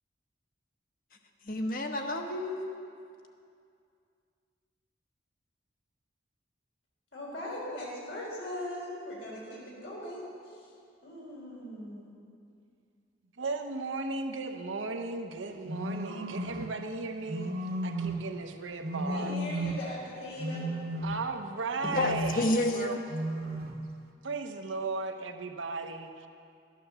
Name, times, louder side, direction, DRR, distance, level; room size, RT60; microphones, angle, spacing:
voice 1, 1.5-2.9 21.9-23.0, left 1 dB, 45° left, 4 dB, 1.0 m, -30 dB
voice 2, 7.1-10.7 11.0-12.1 19.1-20.6, left 1 dB, 80° left, -5 dB, 3.8 m, -40 dB
voice 3, 13.4-19.4 21.0-23.0 24.2-26.3, right 3 dB, 90° right, 6 dB, 0.9 m, -36 dB
sound 1, 15.7-16.7 17.3-18.3 18.8-19.9 20.4-21.4 21.8-22.5 23.1-23.8, right 1 dB, 50° right, 1.0 m, -34 dB
13.0 x 9.4 x 6.9 m, 2.4 s
head